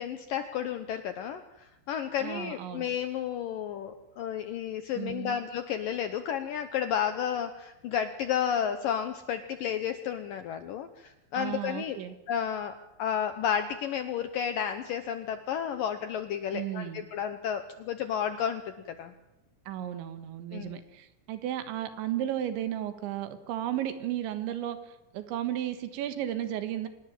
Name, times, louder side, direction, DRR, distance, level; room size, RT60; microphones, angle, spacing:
voice 1, 0.0-12.0 12.3-19.1 20.5-20.8, left 8 dB, 75° left, 9 dB, 2.1 m, -32 dB
voice 2, 2.2-2.9 5.0-5.4 11.3-12.2 16.5-17.1 19.7-24.8 25.1-26.9, right 11 dB, 90° right, 9 dB, 3.8 m, -34 dB
25.5 x 19.5 x 7.4 m, 0.91 s
omnidirectional pair, 5.1 m